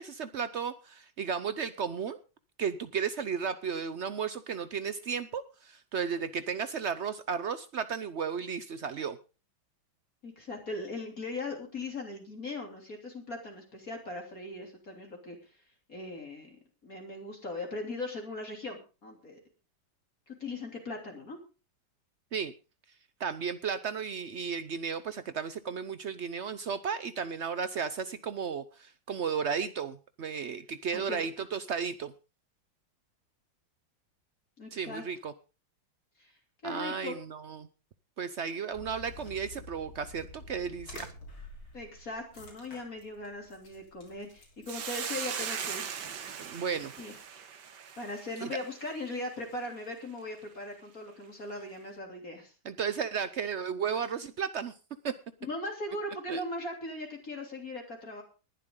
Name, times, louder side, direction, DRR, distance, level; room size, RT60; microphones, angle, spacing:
voice 1, 0.0-2.2 2.6-9.2 22.3-22.5 23.2-32.1 34.7-35.3 36.6-37.7 38.2-41.1 46.4-46.9 48.4-48.5 52.6-54.7 55.0-55.1 56.3-56.4, right 6 dB, 85° right, 12 dB, 0.6 m, -34 dB
voice 2, 10.2-15.4 15.9-16.6 16.8-19.4 20.4-21.4 30.9-31.5 34.6-35.0 36.2-36.3 36.6-37.1 41.7-45.9 47.0-47.1 48.0-52.5 55.4-58.2, left 2 dB, 40° left, 1 dB, 3.6 m, -39 dB
sound 1, 38.7-45.0, left 2 dB, 80° left, 4.9 m, -49 dB
Hiss, 44.7-49.2, right 7 dB, 60° right, 1.9 m, -39 dB
20.0 x 11.5 x 3.8 m, 0.33 s
omnidirectional pair, 2.3 m